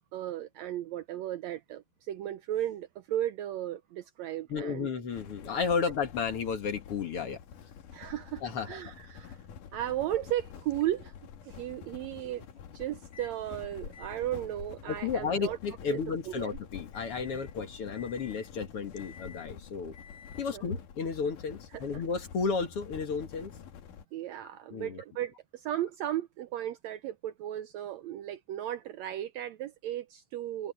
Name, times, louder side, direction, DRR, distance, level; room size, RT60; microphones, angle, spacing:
voice 1, 0.1-4.9 7.9-9.4 9.7-11.1 11.5-12.4 12.7-15.6 15.9-16.0 16.3-16.6 20.5-20.6 21.7-21.8 24.1-30.7, right 12 dB, 75° right, 1.7 m, -35 dB
voice 2, 4.5-7.4 8.4-8.8 14.9-20.0 20.4-23.5 24.7-25.0, left 5 dB, 50° left, 2.4 m, -33 dB
sound 1, 5.1-24.0, left 8 dB, 85° left, 3.2 m, -48 dB
Microwave oven, 13.1-13.4 13.9-20.8, left 6 dB, 30° left, 5.0 m, -55 dB
omnidirectional pair, 3.6 m